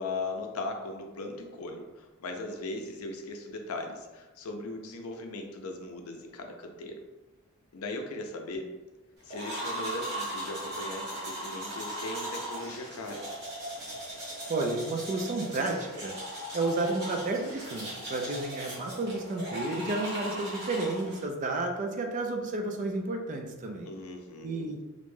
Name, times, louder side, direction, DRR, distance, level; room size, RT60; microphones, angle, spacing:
voice 1, 0.0-7.0 7.7-8.6 9.2-13.2 23.9-24.7, left 2 dB, 75° left, 4 dB, 0.4 m, -38 dB
sound 1, 9.3-21.3, right 1 dB, 50° right, 1.1 m, -38 dB
voice 2, 14.5-16.2 16.5-23.9 24.4-24.8, right 2 dB, 35° right, 3 dB, 0.3 m, -31 dB
2.5 x 2.1 x 3.1 m, 1.1 s
head